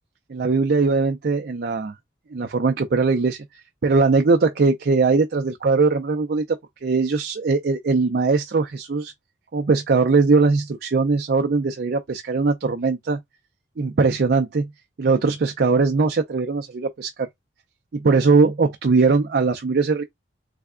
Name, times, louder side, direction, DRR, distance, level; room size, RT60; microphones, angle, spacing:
voice 1, 0.3-1.9 2.3-3.4 3.8-6.4 6.8-9.1 9.5-13.2 13.8-14.7 15.0-17.3 17.9-20.0, right 4 dB, 50° right, 0.4 m, -20 dB
3.4 x 2.2 x 3.6 m
head